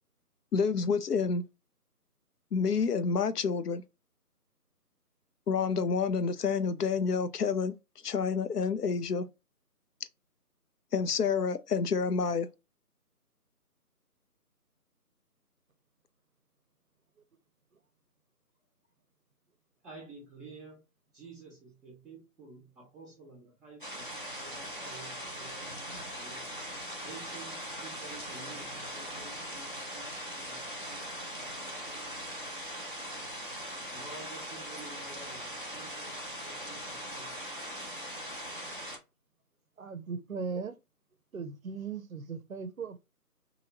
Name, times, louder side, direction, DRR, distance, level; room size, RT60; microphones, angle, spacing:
voice 1, 0.5-1.4 2.5-3.8 5.5-7.7 8.0-9.2 10.9-12.5, left 5 dB, 75° left, 0.5 m, -28 dB
voice 2, 19.8-20.8 21.1-26.5 27.0-32.5 33.9-37.7, right 3 dB, ahead, 0.7 m, -51 dB
sound 1, 23.8-39.0, equal, 35° left, 0.6 m, -40 dB
voice 3, 39.8-40.8 41.3-43.0, right 5 dB, 60° right, 0.5 m, -38 dB
2.7 x 2.7 x 2.8 m
figure-of-eight pair, 165°, 48 cm